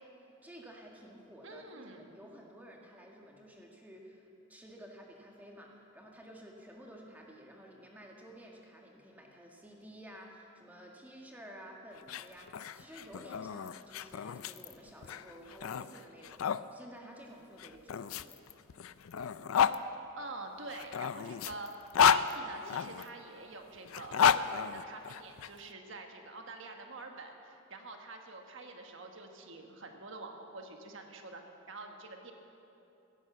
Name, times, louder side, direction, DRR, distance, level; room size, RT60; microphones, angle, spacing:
voice 1, 0.0-18.4, equal, 10° right, -1 dB, 1.7 m, -52 dB
voice 2, 1.4-2.1 20.2-31.4 31.7-32.3, right 3 dB, 60° right, 3 dB, 1.4 m, -46 dB
sound 1, 12.0-16.6 17.6-19.8 20.7-23.1 23.9-25.5, left 7 dB, 80° left, 0.4 m, -31 dB
16.5 x 11.0 x 7.2 m, 2.8 s
head